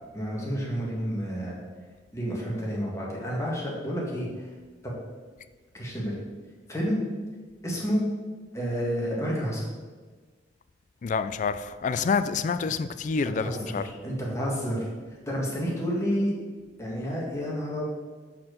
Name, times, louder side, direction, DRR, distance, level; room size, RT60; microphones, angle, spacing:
voice 1, 0.1-1.6 2.1-4.5 4.8-4.9 5.7-6.1 6.7-7.0 7.6-8.0 8.5-9.6 13.2-14.9 15.3-16.3 16.8-17.9, equal, 15° left, 1.7 m, -30 dB
voice 2, 11.0-13.9, left 5 dB, 45° left, 0.3 m, -27 dB
5.9 x 4.4 x 6.4 m
head